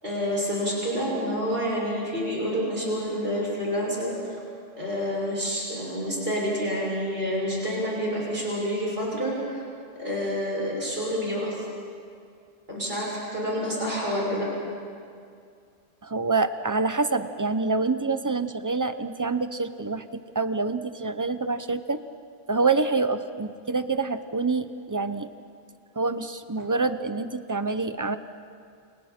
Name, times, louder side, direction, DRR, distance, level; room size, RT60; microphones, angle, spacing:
voice 1, 0.0-4.4 4.8-9.6 10.0-11.6 12.7-14.5, equal, 60° right, -5 dB, 6.7 m, -28 dB
voice 2, 16.0-22.0 22.5-25.3 26.0-28.2, right 3 dB, 20° right, 10 dB, 0.7 m, -26 dB
29.5 x 28.5 x 4.5 m, 2.3 s
omnidirectional pair, 1.1 m